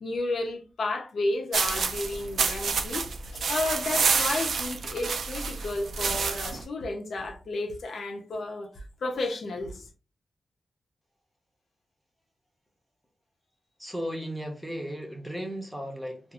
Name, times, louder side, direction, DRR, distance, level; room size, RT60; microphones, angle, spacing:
voice 1, 0.0-3.1 3.3-9.9, left 2 dB, 70° left, 0.6 m, -32 dB
sound 1, 1.5-6.6, right 5 dB, 70° right, 0.4 m, -28 dB
voice 2, 13.8-16.3, equal, 5° right, 0.6 m, -35 dB
2.4 x 2.4 x 2.9 m
wide cardioid pair, 180°, 0 cm